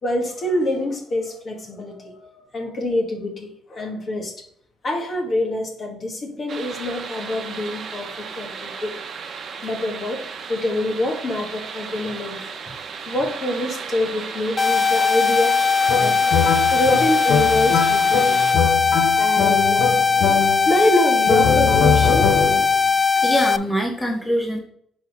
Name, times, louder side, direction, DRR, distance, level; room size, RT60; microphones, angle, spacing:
voice 1, 0.0-4.5 4.8-8.9 9.6-10.2 10.5-12.5 13.0-15.6 15.9-18.4 19.1-19.9 20.6-22.4, left 1 dB, 45° left, 1 dB, 1.6 m, -25 dB
sound 1, 6.5-18.6, right 6 dB, 55° right, 0.8 m, -35 dB
sound 2, 14.6-23.6, left 5 dB, 20° left, 0.3 m, -19 dB
sound 3, 15.9-20.8 21.3-22.8, left 6 dB, 75° left, 0.6 m, -22 dB
voice 2, 23.0-24.6, equal, 5° left, 1 dB, 1.0 m, -24 dB
4.6 x 4.3 x 5.2 m, 0.64 s
cardioid pair, 90°, 0 cm